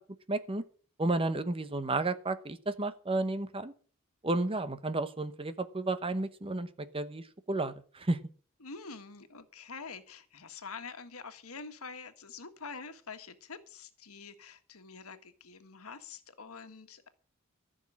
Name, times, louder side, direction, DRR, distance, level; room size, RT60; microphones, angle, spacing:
voice 1, 0.3-0.6 1.0-3.7 4.2-8.2, right 2 dB, 25° right, 12 dB, 1.0 m, -32 dB
voice 2, 8.6-17.1, left 4 dB, 90° left, 9 dB, 1.6 m, -46 dB
14.5 x 6.4 x 8.6 m, 0.43 s
head